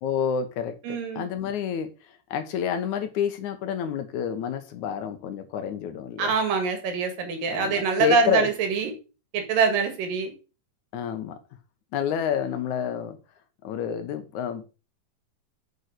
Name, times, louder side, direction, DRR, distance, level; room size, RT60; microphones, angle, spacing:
voice 1, 0.0-6.4 7.5-8.5 10.9-11.4 11.9-13.2 13.6-14.7, left 8 dB, 70° left, 2.3 m, -29 dB
voice 2, 0.9-1.3 6.2-8.9 9.3-10.3, right 5 dB, 90° right, 3.6 m, -24 dB
6.9 x 6.5 x 6.4 m
omnidirectional pair, 3.8 m